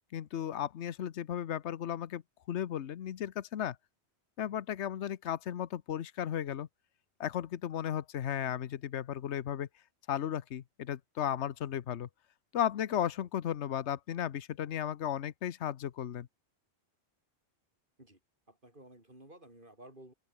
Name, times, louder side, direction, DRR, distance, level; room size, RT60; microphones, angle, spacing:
voice 1, 0.1-2.2 2.5-3.8 4.4-6.7 7.2-9.7 10.1-12.1 12.5-16.3, left 10 dB, 80° left, 1.1 m, -35 dB
voice 2, 18.5-20.1, right 1 dB, 50° right, 6.6 m, -54 dB
open air
omnidirectional pair, 1.1 m